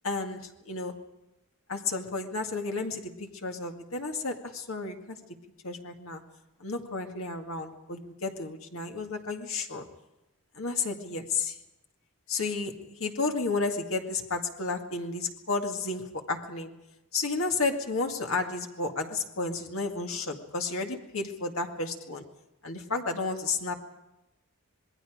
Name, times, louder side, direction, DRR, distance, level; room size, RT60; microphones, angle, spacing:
voice 1, 0.0-1.0 1.7-5.3 5.6-6.3 6.6-9.9 10.6-11.6 12.3-16.7 17.1-22.3 22.6-23.7, left 3 dB, 65° left, 4 dB, 2.0 m, -32 dB
26.5 x 21.5 x 5.0 m, 0.98 s
head